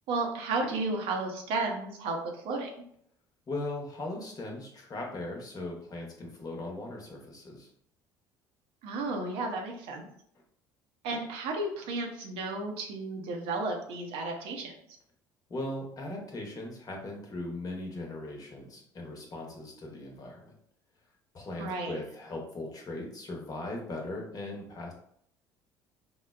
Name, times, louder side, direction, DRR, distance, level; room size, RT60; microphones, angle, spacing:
voice 1, 0.1-2.7 8.8-10.1 11.0-14.7 21.6-22.0, right 3 dB, 65° right, 2 dB, 0.6 m, -33 dB
voice 2, 3.5-7.7 15.5-20.5 21.3-24.9, left 2 dB, 35° left, 0 dB, 0.9 m, -39 dB
3.6 x 2.0 x 2.4 m, 0.67 s
hypercardioid pair, 65°, 10 cm